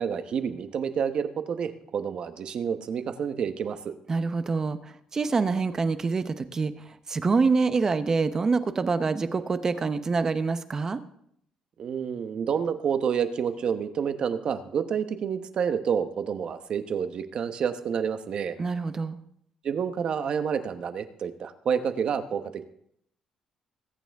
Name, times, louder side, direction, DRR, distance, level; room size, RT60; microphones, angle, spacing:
voice 1, 0.0-3.9 11.8-18.6 19.6-22.6, right 7 dB, 50° right, 10 dB, 1.0 m, -29 dB
voice 2, 4.1-6.7 7.1-11.0 18.6-19.2, right 4 dB, 25° right, 11 dB, 0.8 m, -26 dB
21.0 x 9.0 x 3.5 m, 0.70 s
cardioid pair, 135°, 2 cm